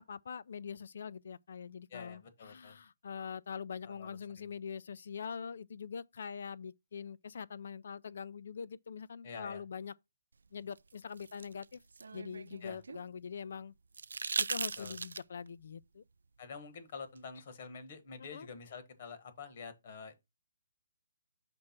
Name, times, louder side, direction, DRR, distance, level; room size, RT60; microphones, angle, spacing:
voice 1, 0.0-9.9 10.5-11.8 12.1-13.7 14.4-16.0 18.3-18.5, left 6 dB, 50° left, 0.3 m, -43 dB
voice 2, 1.9-2.8 3.8-4.5 9.2-9.6 12.6-12.8 14.8-15.0 16.4-20.2, left 5 dB, 35° left, 1.1 m, -47 dB
sound 1, 10.8-13.0 13.9-15.5 17.2-17.3, right 4 dB, 85° right, 0.3 m, -38 dB
5.9 x 3.2 x 5.8 m
hypercardioid pair, 175°, 0 cm